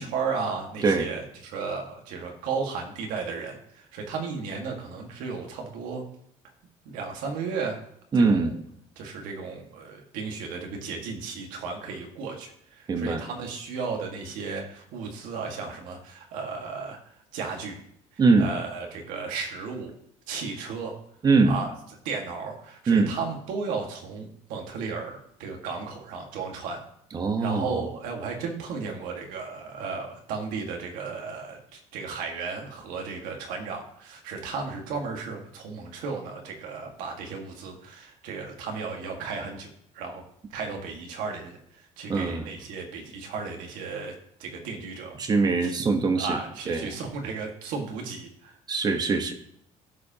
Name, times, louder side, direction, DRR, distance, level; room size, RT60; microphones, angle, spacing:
voice 1, 0.0-6.0 6.9-7.8 8.1-8.6 9.0-17.0 17.3-17.8 18.1-19.9 20.3-20.9 21.4-21.7 22.1-26.8 27.4-40.2 40.5-44.1 44.4-45.2 45.6-45.7 46.2-48.6 48.8-48.9, right 5 dB, 85° right, 2 dB, 1.7 m, -34 dB
voice 2, 8.1-8.5 12.9-13.2 18.2-18.5 21.2-21.6 22.9-23.1 27.1-27.7 42.1-42.4 45.2-46.4 46.7-46.9 48.7-49.3, right 4 dB, 30° right, 7 dB, 1.0 m, -22 dB
15.0 x 5.0 x 2.9 m, 0.70 s
cardioid pair, 130°, 14 cm